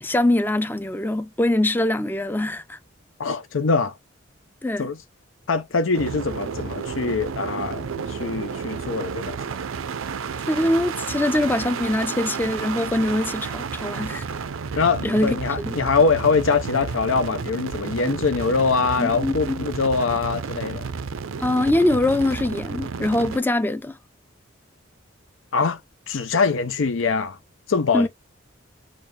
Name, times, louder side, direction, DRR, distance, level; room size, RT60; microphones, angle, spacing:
voice 1, 0.0-2.8 4.6-4.9 10.5-14.2 14.7-15.8 19.0-19.6 21.4-24.0 27.9-28.1, left 1 dB, 10° left, 0.4 m, -23 dB
voice 2, 3.2-3.9 4.8-5.0 5.5-9.4 14.8-20.9 25.5-25.8 26.1-27.4 27.7-28.1, left 4 dB, 75° left, 0.6 m, -23 dB
sound 1, 5.9-23.4, right 5 dB, 85° right, 0.5 m, -31 dB
6.6 x 2.4 x 3.2 m
head